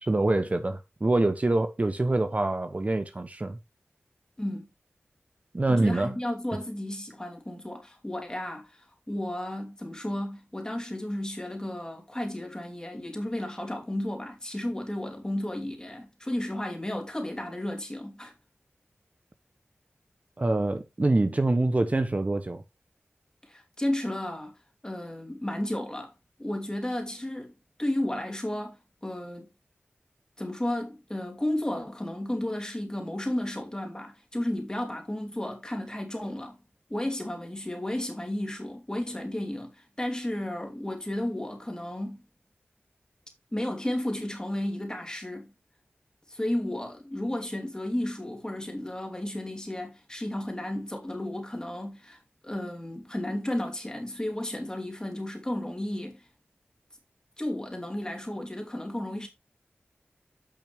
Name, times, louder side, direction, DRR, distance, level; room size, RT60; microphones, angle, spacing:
voice 1, 0.0-3.6 5.5-6.2 20.4-22.6, right 2 dB, 35° right, 0.7 m, -25 dB
voice 2, 4.4-4.7 5.7-18.3 23.4-24.6 24.8-26.1 26.4-27.5 27.8-29.5 30.4-36.6 36.9-42.2 43.5-45.5 46.3-56.3 57.4-59.3, left 1 dB, 15° left, 3.0 m, -33 dB
8.7 x 5.9 x 3.4 m
wide cardioid pair, 70°, 4 cm